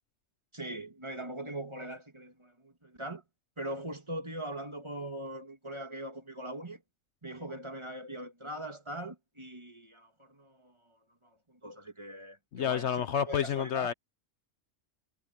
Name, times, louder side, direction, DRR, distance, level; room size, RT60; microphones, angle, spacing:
voice 1, 0.5-3.2 3.6-6.8 7.2-12.9 13.3-13.9, right 1 dB, 20° right, 2.3 m, -41 dB
voice 2, 12.5-13.9, left 8 dB, 65° left, 0.9 m, -29 dB
omnidirectional pair, 1.3 m